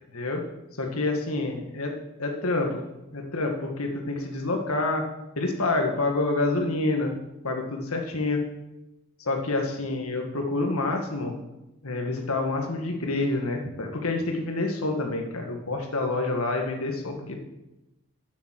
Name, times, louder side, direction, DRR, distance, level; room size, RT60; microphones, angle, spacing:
voice 1, 0.8-1.9 2.2-2.8 3.1-5.1 5.4-7.1 7.4-8.4 9.2-11.3 11.8-17.4, left 2 dB, 85° left, 3 dB, 1.8 m, -27 dB
11.0 x 7.1 x 6.5 m, 0.96 s
head